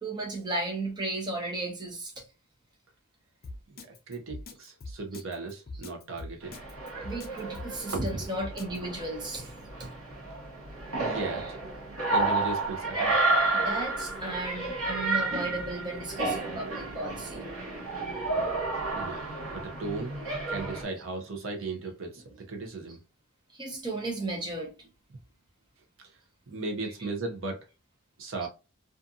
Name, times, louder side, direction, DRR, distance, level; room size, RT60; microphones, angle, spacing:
voice 1, 0.0-2.1 5.1-5.2 5.7-5.8 7.0-9.5 9.8-9.9 11.4-11.5 12.3-12.4 13.5-17.4 20.3-20.4 23.5-24.9 26.9-27.1 28.4-28.5, right 2 dB, 20° right, 0.8 m, -35 dB
Drum kit, 3.4-8.8, left 2 dB, 40° left, 0.5 m, -42 dB
voice 2, 3.7-6.5 7.9-8.2 11.0-11.6 12.1-13.2 18.9-20.2 20.5-23.0 26.0-26.2 26.5-27.7 28.2-28.5, right 3 dB, 60° right, 0.7 m, -36 dB
sound 1, 6.4-20.8, right 2 dB, 80° right, 1.1 m, -31 dB
2.6 x 2.5 x 2.4 m
head